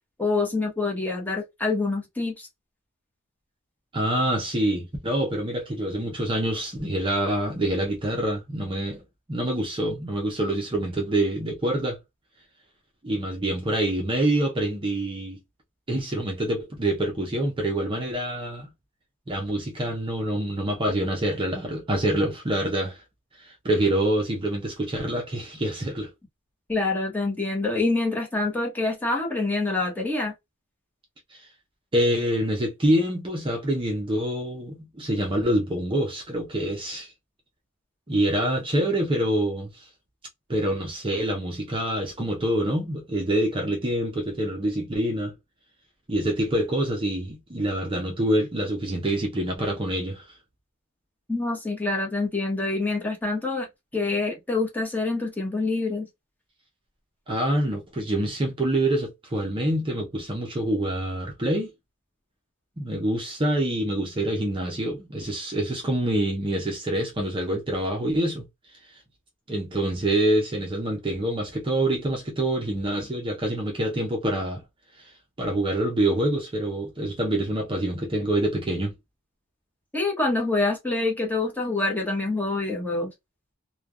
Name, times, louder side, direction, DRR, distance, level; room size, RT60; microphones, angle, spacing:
voice 1, 0.2-2.5 26.7-30.3 51.3-53.7 53.9-56.1 79.9-83.1, left 3 dB, 10° left, 0.9 m, -26 dB
voice 2, 3.9-9.0 9.3-12.0 13.0-15.4 15.9-18.7 19.3-23.0 23.4-26.1 31.3-31.5 31.9-37.1 38.1-39.9 40.5-45.3 46.1-50.4 57.3-61.7 62.8-68.4 69.5-74.6 75.0-75.1 75.4-78.9, right 1 dB, 25° right, 0.6 m, -26 dB
3.2 x 2.2 x 2.3 m
head